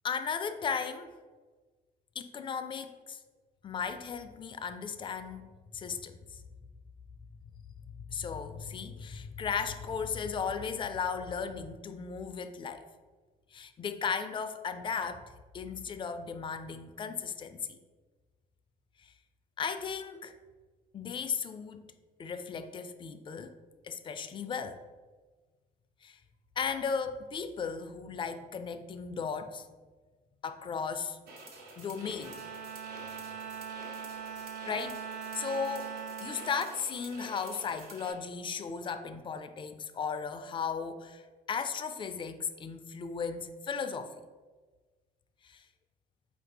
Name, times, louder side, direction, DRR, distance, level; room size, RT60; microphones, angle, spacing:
voice 1, 0.0-1.1 2.2-3.2 3.6-6.2 8.1-12.9 13.5-17.8 19.0-19.1 19.6-20.3 20.9-21.8 22.2-23.5 23.8-24.8 26.0-26.2 26.6-29.6 30.4-31.2 31.8-32.4 34.3-35.0 35.3-35.9 36.2-44.1 45.4-45.7, left 6 dB, 30° left, 9 dB, 0.3 m, -36 dB
sound 1, 31.3-38.1, right 2 dB, 60° right, 0.9 m, -49 dB
Bowed string instrument, 32.2-37.7, right 7 dB, 80° right, 0.5 m, -42 dB
4.3 x 2.6 x 3.9 m, 1.3 s
cardioid pair, 110°, 17 cm